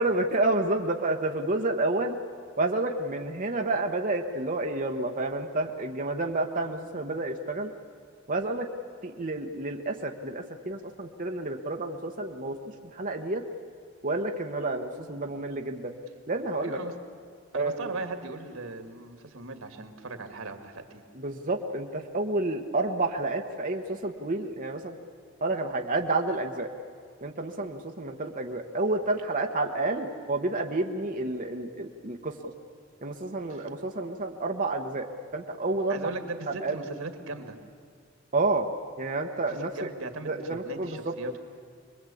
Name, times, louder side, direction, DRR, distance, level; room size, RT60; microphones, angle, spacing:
voice 1, 0.0-2.2 2.6-7.7 8.3-8.7 9.0-12.6 12.9-13.4 14.0-15.9 16.3-16.8 17.5-17.9 21.1-24.9 25.4-26.7 27.2-32.5 33.0-35.1 35.3-36.1 36.5-36.8 38.3-38.7 39.0-39.9 40.2-41.1, right 2 dB, 40° right, 2 dB, 1.1 m, -29 dB
voice 2, 16.6-16.9 17.5-21.0 33.5-33.7 35.9-37.6 39.5-41.4, right 3 dB, 85° right, 6 dB, 2.1 m, -38 dB
25.0 x 22.0 x 8.5 m, 2.1 s
head